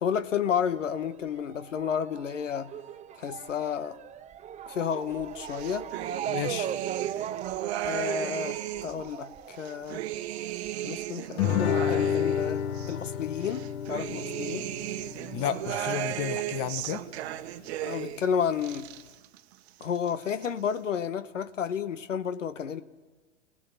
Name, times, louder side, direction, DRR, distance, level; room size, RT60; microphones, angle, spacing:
voice 1, 0.0-2.7 3.2-4.0 4.7-5.9 7.8-10.0 10.8-14.7 17.8-18.9 19.8-22.8, left 7 dB, 85° left, 12 dB, 1.2 m, -31 dB
Motor vehicle (road) / Siren, 0.6-13.6 13.8-15.0 15.7-15.8 16.0-16.1, right 9 dB, 20° right, 0.7 m, -40 dB
sound 1, 5.4-9.0 9.5-12.9 13.4-18.3 18.5-19.4 19.7-20.5, right 13 dB, 60° right, 1.1 m, -35 dB
voice 2, 6.3-6.7 15.3-17.0, left 11 dB, 40° left, 13 dB, 1.4 m, -32 dB
Guitar, 11.4-16.4, left 9 dB, 55° left, 1.2 m, -30 dB
30.0 x 18.5 x 6.9 m, 1.3 s
hypercardioid pair, 110°, 36 cm